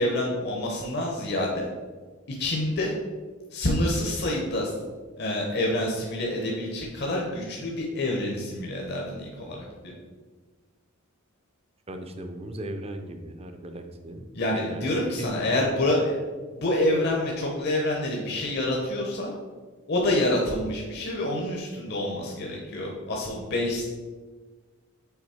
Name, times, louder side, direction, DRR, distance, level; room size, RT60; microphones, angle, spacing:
voice 1, 0.0-1.7 2.4-2.9 3.5-4.7 5.2-9.6 9.8-9.9 14.3-16.2 16.5-19.3 19.9-23.8, left 1 dB, 50° left, -1 dB, 0.8 m, -27 dB
voice 2, 11.9-14.3 14.5-14.9 15.2-15.6, right 1 dB, 30° right, 6 dB, 0.6 m, -37 dB
5.8 x 4.1 x 4.3 m, 1.4 s
head